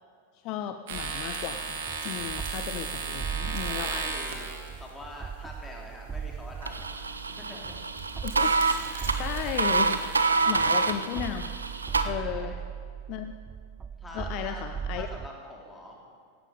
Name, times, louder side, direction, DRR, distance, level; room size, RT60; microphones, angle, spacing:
voice 1, 0.4-4.1 8.2-8.5 9.2-11.5 12.0-12.5 13.1-13.3 14.1-15.1, left 10 dB, 40° left, 8 dB, 0.6 m, -35 dB
sound 1, 0.9-15.3, right 7 dB, 20° right, 0.4 m, -39 dB
sound 2, 0.9-4.9 6.9-7.2 7.7-10.2, right 5 dB, 55° right, 1.8 m, -36 dB
voice 2, 3.6-7.9 10.3-10.7 12.2-12.6 13.9-14.6 14.9-16.0, left 1 dB, 10° left, -2 dB, 2.9 m, -45 dB
sound 3, 6.6-12.0, right 4 dB, 75° right, 0.7 m, -27 dB
16.0 x 11.0 x 5.1 m, 2.3 s
figure-of-eight pair, 90°, 0 cm